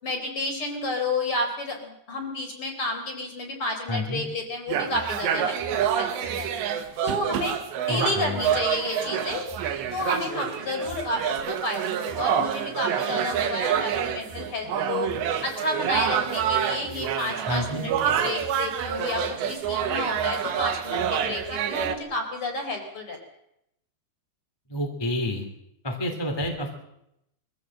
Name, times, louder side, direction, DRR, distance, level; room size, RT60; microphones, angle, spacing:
voice 1, 0.0-5.6 5.9-6.5 7.0-7.6 7.8-9.4 9.9-15.1 15.4-23.2, left 2 dB, 30° left, 3 dB, 4.3 m, -31 dB
voice 2, 3.9-4.2 7.9-8.4 17.5-17.8 24.7-25.4 25.8-26.7, left 1 dB, 5° left, 3 dB, 2.3 m, -29 dB
sound 1, 4.7-22.0, right 8 dB, 90° right, 3.9 m, -27 dB
23.5 x 15.0 x 7.7 m, 0.81 s
omnidirectional pair, 4.9 m